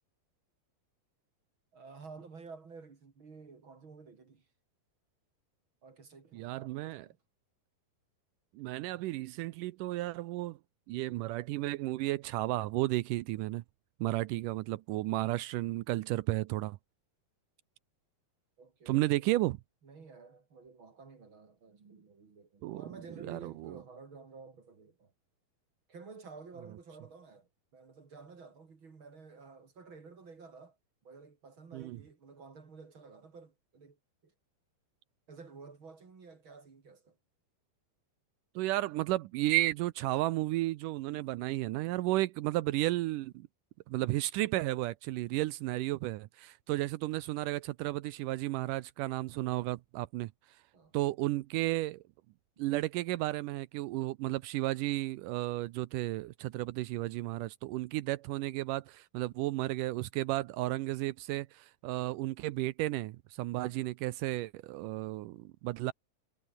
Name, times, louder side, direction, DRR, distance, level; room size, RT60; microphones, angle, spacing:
voice 1, 1.7-4.4 5.8-7.2 18.6-19.1 19.8-25.1 25.9-30.8 31.0-34.0 34.2-34.3 35.3-37.2 50.7-50.9, right 4 dB, 35° right, 3.1 m, -52 dB
voice 2, 6.3-7.1 8.6-10.6 10.9-13.6 14.0-16.8 18.9-19.6 22.6-22.8 23.2-23.8 31.7-32.0 38.6-43.5 43.9-50.3 50.9-52.0 52.6-65.9, right 17 dB, 80° right, 1.9 m, -33 dB
omnidirectional pair, 4.4 m